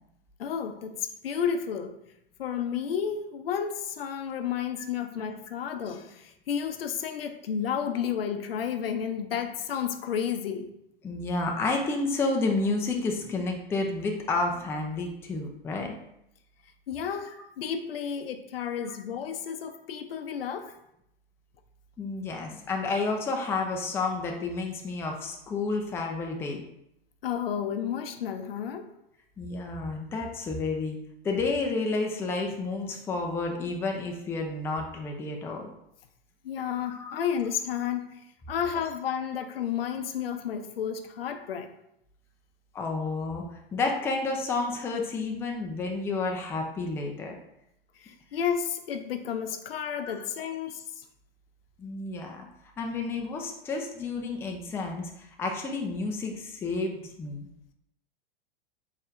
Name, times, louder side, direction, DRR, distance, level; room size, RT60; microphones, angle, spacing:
voice 1, 0.4-1.9 2.4-10.7 16.9-20.7 27.2-28.9 36.4-38.2 38.5-41.7 48.0-51.0, left 8 dB, 70° left, 7 dB, 0.6 m, -32 dB
voice 2, 11.0-15.9 22.0-26.6 29.4-31.0 31.2-35.7 36.8-37.1 42.7-47.4 50.1-50.2 51.8-52.5 52.8-57.5, left 3 dB, 10° left, 2 dB, 0.4 m, -30 dB
4.3 x 3.2 x 2.4 m, 0.79 s
figure-of-eight pair, 95°, 30 cm